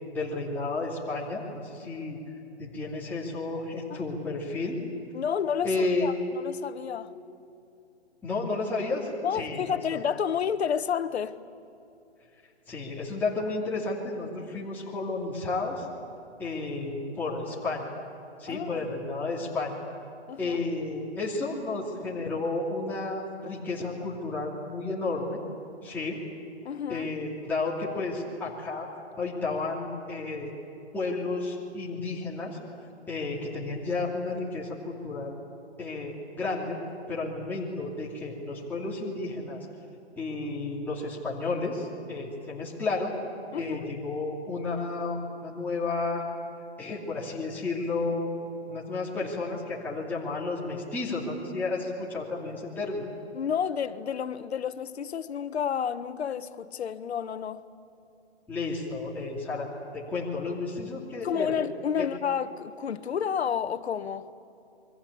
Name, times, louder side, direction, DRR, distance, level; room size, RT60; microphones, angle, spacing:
voice 1, 0.1-2.2 2.6-4.8 5.6-6.1 8.2-9.6 12.7-15.9 16.4-17.8 18.4-19.7 20.4-25.4 25.8-26.2 26.9-28.9 29.2-30.5 30.9-32.6 33.1-35.3 35.8-36.8 37.1-39.7 40.2-43.1 43.6-46.2 46.8-48.3 48.7-53.0 58.5-61.5 62.0-62.1, left 3 dB, 5° left, 2.8 m, -32 dB
voice 2, 5.1-7.1 9.2-11.4 18.5-18.9 20.3-20.6 26.6-27.1 43.5-43.9 53.3-57.6 61.2-64.3, left 7 dB, 70° left, 1.3 m, -30 dB
29.0 x 23.5 x 8.6 m
hypercardioid pair, 160°, 34 cm